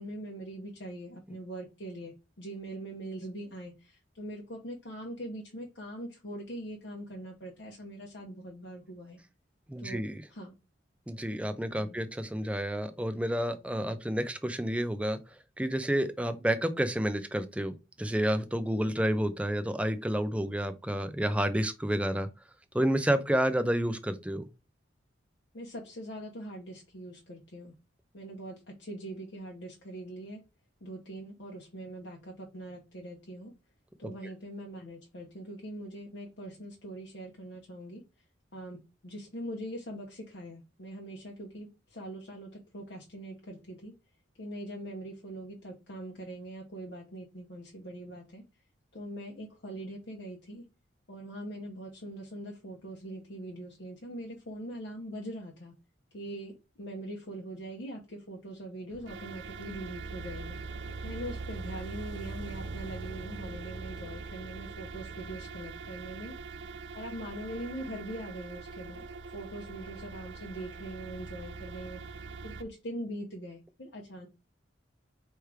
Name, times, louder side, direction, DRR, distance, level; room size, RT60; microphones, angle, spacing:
voice 1, 0.0-9.2 9.8-10.0 10.3-10.5 11.7-12.0 25.5-27.7 28.1-30.4 30.8-33.5 34.0-38.0 38.5-43.9 44.4-48.4 48.9-50.6 51.1-55.7 56.1-60.6 61.0-66.3 66.6-74.3, right 1 dB, 65° left, 0.9 m, -42 dB
voice 2, 9.7-10.2 11.1-22.3 22.7-24.5, right 1 dB, 5° right, 0.5 m, -30 dB
sound 1, 58.9-72.6, right 4 dB, 70° right, 0.6 m, -42 dB
3.3 x 3.2 x 4.9 m
head